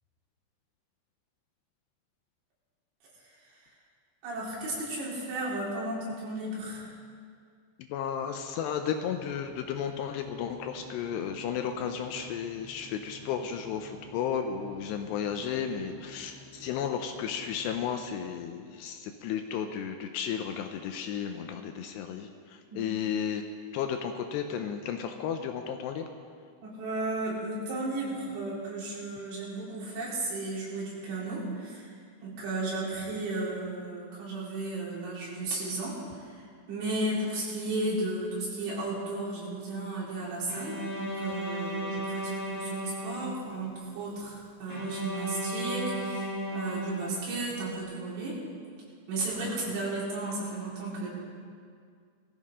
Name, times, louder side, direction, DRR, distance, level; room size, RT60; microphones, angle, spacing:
voice 1, 4.2-6.9 22.7-22.9 26.6-32.0 32.2-36.4 36.7-48.4 49.1-51.1, right 2 dB, 90° right, -7 dB, 6.5 m, -34 dB
voice 2, 7.9-22.3 22.8-23.4 23.7-26.1, left 8 dB, 80° left, 6 dB, 2.6 m, -33 dB
sound 1, 8.6-18.1, left 2 dB, 45° left, 2.7 m, -52 dB
Bowed string instrument, 40.5-43.7 44.7-47.6, right 1 dB, 20° left, 4.0 m, -35 dB
20.0 x 14.5 x 3.7 m, 2.1 s
omnidirectional pair, 5.3 m